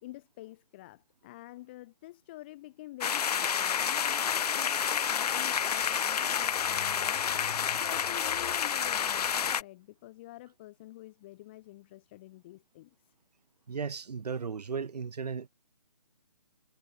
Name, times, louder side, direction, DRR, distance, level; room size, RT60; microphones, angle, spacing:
voice 1, 0.0-7.5 7.8-13.1, left 17 dB, 15° left, 1.3 m, -48 dB
sound 1, 3.0-9.6, left 8 dB, 75° left, 0.4 m, -29 dB
voice 2, 13.7-15.5, right 5 dB, 80° right, 0.9 m, -35 dB
hypercardioid pair, 170°, 20 cm